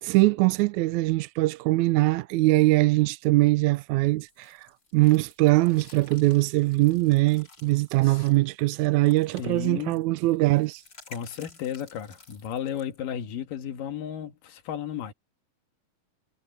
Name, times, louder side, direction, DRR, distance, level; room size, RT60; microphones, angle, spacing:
voice 1, 0.0-10.8, right 20 dB, 80° right, 1.7 m, -22 dB
sound 1, 4.3-13.0, left 3 dB, 30° left, 2.9 m, -53 dB
voice 2, 9.4-10.0 11.1-15.1, left 9 dB, 80° left, 3.2 m, -34 dB
omnidirectional pair, 3.9 m